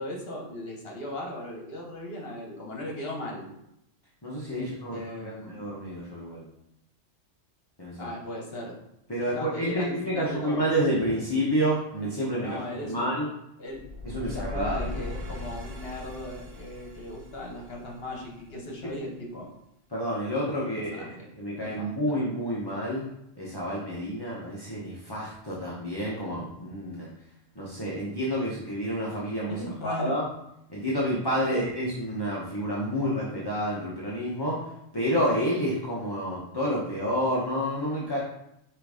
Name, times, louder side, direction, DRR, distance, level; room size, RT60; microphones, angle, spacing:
voice 1, 0.0-3.5 4.6-5.6 8.0-8.7 9.3-10.7 12.4-13.1 13.6-13.8 14.2-19.5 20.6-21.2 21.6-22.1 29.5-30.2 31.5-31.6, left 1 dB, 50° left, -1 dB, 1.5 m, -37 dB
voice 2, 4.2-5.0 5.2-6.4 7.8-8.1 9.1-13.3 14.0-14.9 19.9-21.1 21.4-23.1 23.4-27.1 27.5-30.3 30.7-34.6 34.9-38.2, equal, 20° left, -6 dB, 1.0 m, -29 dB
sound 1, 13.7-18.7, left 2 dB, 55° right, 1.0 m, -39 dB
6.0 x 3.3 x 5.0 m, 0.82 s
omnidirectional pair, 1.3 m